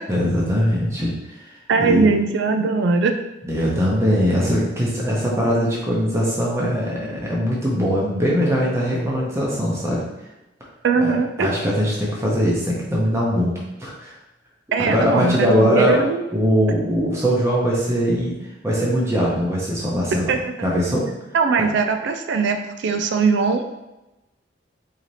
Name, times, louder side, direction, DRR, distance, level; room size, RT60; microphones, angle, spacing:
voice 1, 0.1-2.1 3.4-10.0 11.0-11.1 11.4-14.1 14.8-16.1 16.3-18.3 18.6-20.3 20.6-21.1 21.6-21.7, equal, 15° right, -5 dB, 0.7 m, -21 dB
voice 2, 1.7-3.1 10.8-11.5 14.7-16.2 20.3-20.5 21.3-23.6, right 4 dB, 70° right, 6 dB, 0.3 m, -20 dB
4.0 x 2.8 x 3.1 m, 0.99 s
head